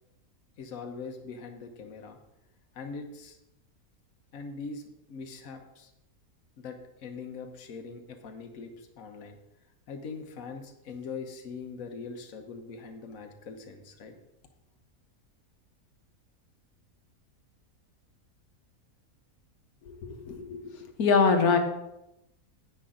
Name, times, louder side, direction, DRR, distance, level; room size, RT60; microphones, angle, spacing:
voice 1, 0.6-2.2 2.7-3.4 4.3-4.8 5.1-5.9 6.6-9.4 9.9-14.1, left 4 dB, 70° left, 4 dB, 1.4 m, -42 dB
voice 2, 19.9-20.6 21.0-21.6, left 5 dB, 85° left, 5 dB, 1.6 m, -23 dB
10.0 x 8.9 x 3.8 m, 0.88 s
omnidirectional pair, 1.5 m